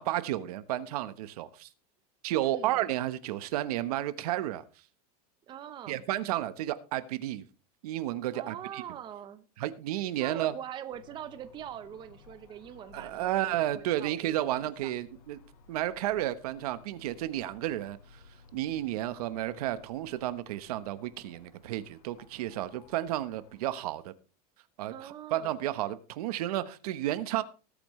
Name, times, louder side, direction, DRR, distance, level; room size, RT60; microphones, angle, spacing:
voice 1, 0.0-1.7 2.2-4.6 5.9-7.5 7.8-8.8 9.6-10.5 12.9-15.4 15.7-18.2 18.5-24.1 24.8-27.4, right 14 dB, 70° right, 1.1 m, -32 dB
voice 2, 2.4-2.8 5.5-6.0 8.3-9.4 10.2-14.9 24.9-25.7, right 10 dB, 25° right, 0.9 m, -43 dB
sound 1, 10.9-23.7, left 4 dB, 80° left, 4.8 m, -57 dB
19.5 x 8.5 x 3.2 m
supercardioid pair, 155°, 20 cm